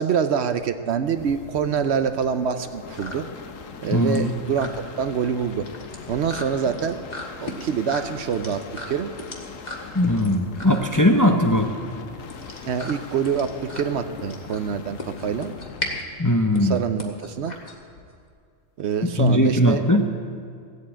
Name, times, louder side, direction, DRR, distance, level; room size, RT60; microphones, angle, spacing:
voice 1, 0.0-3.2 3.8-4.7 5.0-5.7 6.1-7.0 7.4-8.6 8.9-9.1 12.7-15.5 16.6-17.5 18.8-19.8, right 7 dB, 65° right, 9 dB, 0.9 m, -25 dB
sound 1, 0.8-18.3, left 1 dB, 35° left, 1.8 m, -38 dB
sound 2, 1.1-16.1 17.9-18.3, left 5 dB, 90° left, 1.3 m, -41 dB
voice 2, 3.9-4.3 9.9-11.7 16.2-16.8 19.0-20.1, left 1 dB, 20° left, 4 dB, 0.6 m, -19 dB
15.0 x 8.2 x 8.5 m, 2.4 s
omnidirectional pair, 1.3 m